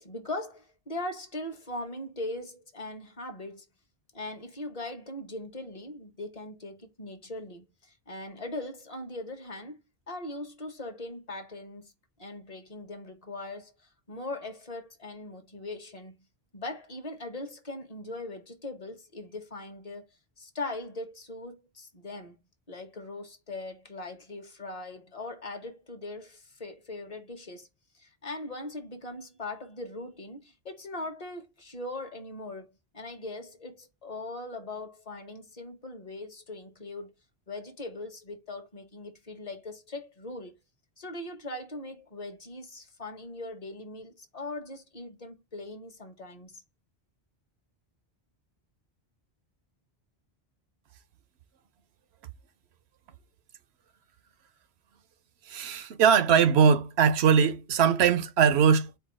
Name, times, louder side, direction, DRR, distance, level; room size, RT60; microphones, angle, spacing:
voice 1, 0.0-3.7 4.1-9.8 10.1-11.9 12.2-13.7 14.1-16.2 16.5-20.0 20.4-22.4 22.7-27.7 27.9-32.7 32.9-37.1 37.5-40.6 41.0-46.6, left 2 dB, 40° left, 0.9 m, -40 dB
voice 2, 55.5-58.9, right 7 dB, 85° right, 0.9 m, -21 dB
4.5 x 2.3 x 4.2 m
omnidirectional pair, 1.1 m